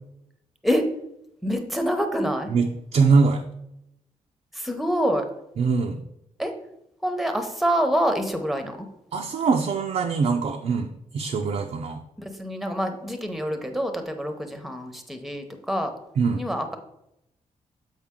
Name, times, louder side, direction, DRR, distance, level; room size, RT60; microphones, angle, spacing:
voice 1, 1.4-2.5 4.5-5.3 6.4-6.5 7.0-8.9 12.2-15.9 16.4-16.8, equal, ahead, 6 dB, 0.9 m, -26 dB
voice 2, 2.9-3.4 5.6-6.0 9.1-12.0 16.2-16.4, right 4 dB, 60° right, 3 dB, 0.6 m, -22 dB
7.2 x 5.0 x 3.7 m, 0.83 s
cardioid pair, 110°, 13 cm